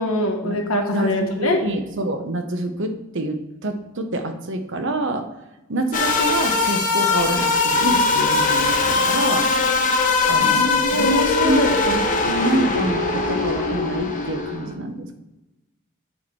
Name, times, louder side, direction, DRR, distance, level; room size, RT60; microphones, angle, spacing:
voice 1, 0.0-1.6 10.4-11.7, left 2 dB, 75° left, 3 dB, 1.4 m, -22 dB
voice 2, 0.9-5.3 5.7-9.5 10.3-11.1 11.4-15.1, right 1 dB, 60° right, 6 dB, 1.0 m, -26 dB
sound 1, 5.9-14.7, left 3 dB, 40° left, 1.1 m, -21 dB
9.2 x 4.3 x 4.7 m, 0.98 s
head